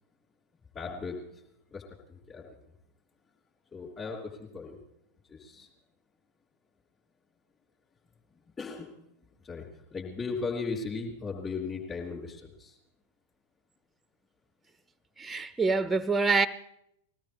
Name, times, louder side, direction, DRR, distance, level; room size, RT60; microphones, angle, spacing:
voice 1, 0.7-1.4 1.7-1.8 2.1-2.5 3.7-4.8 5.3-5.7 8.6-9.0 9.4-12.8, left 4 dB, 25° left, 3.1 m, -37 dB
voice 2, 15.2-16.5, right 4 dB, 10° right, 0.5 m, -26 dB
21.0 x 17.0 x 3.5 m
figure-of-eight pair, 90°, 0 cm